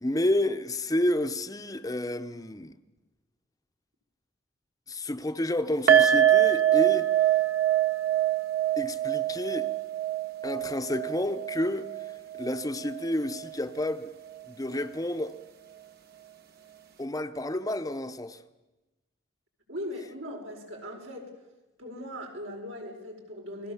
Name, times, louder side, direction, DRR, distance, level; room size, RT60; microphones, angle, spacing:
voice 1, 0.0-2.8 4.9-7.1 8.8-9.7 10.4-11.9 12.4-14.1 14.5-15.4 17.0-18.4, left 1 dB, 20° left, 0.8 m, -30 dB
sound 1, 5.9-13.1 13.3-13.5 13.9-14.0, right 11 dB, 50° right, 1.7 m, -24 dB
voice 2, 19.7-21.3 21.8-23.7, equal, 80° right, 5.1 m, -39 dB
29.0 x 20.5 x 7.2 m
head